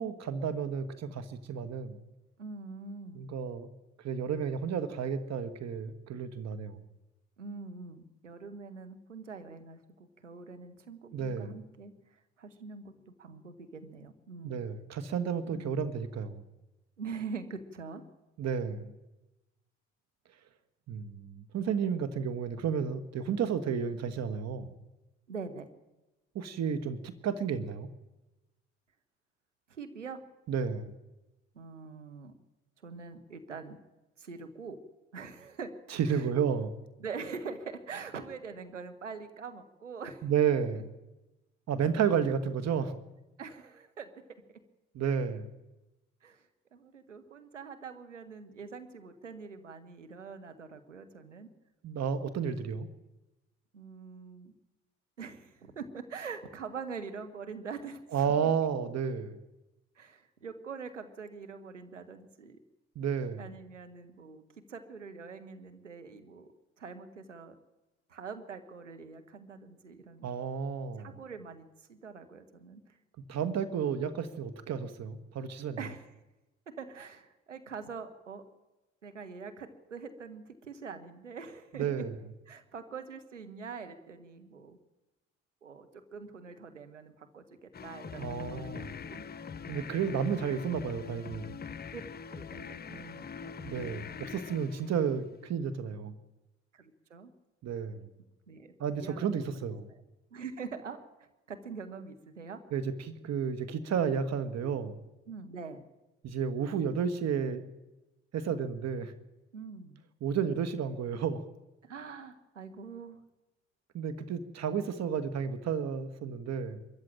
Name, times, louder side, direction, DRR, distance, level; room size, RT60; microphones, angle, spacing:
voice 1, 0.0-2.0 3.2-3.7 4.0-6.8 11.1-11.6 14.4-16.4 18.4-18.9 20.9-24.7 26.4-27.9 30.5-30.9 35.9-36.7 40.2-40.9 41.7-43.0 44.9-45.5 51.8-52.9 58.1-59.4 63.0-63.4 70.2-71.2 73.3-75.8 81.7-82.2 88.2-88.9 89.7-91.5 93.6-96.2 97.6-98.1 98.8-99.9 102.7-105.0 106.2-107.6 108.3-109.1 110.2-111.4 113.9-116.8, right 7 dB, 45° right, 10 dB, 1.7 m, -32 dB
voice 2, 2.4-3.2 7.4-12.9 13.2-14.7 15.5-15.8 17.0-18.0 25.3-25.7 29.7-30.2 31.5-32.4 32.8-33.8 34.2-34.8 35.1-35.7 36.1-36.3 37.0-40.3 43.4-44.1 46.2-51.5 53.7-54.5 55.2-58.5 60.0-62.6 63.4-64.4 64.7-66.5 66.8-67.6 68.1-70.3 71.0-73.0 75.8-76.1 76.8-78.4 79.0-82.0 82.5-84.8 85.6-89.6 91.9-92.0 92.3-93.5 96.7-97.3 98.5-99.4 99.9-100.0 100.3-101.0 101.5-102.6 105.3-105.8 109.5-110.0 111.8-113.2, right 5 dB, 85° right, 8 dB, 1.4 m, -44 dB
sound 1, 87.7-95.5, left 6 dB, 25° left, 0.9 m, -43 dB
24.0 x 14.0 x 9.0 m, 1.0 s
figure-of-eight pair, 50°, 36 cm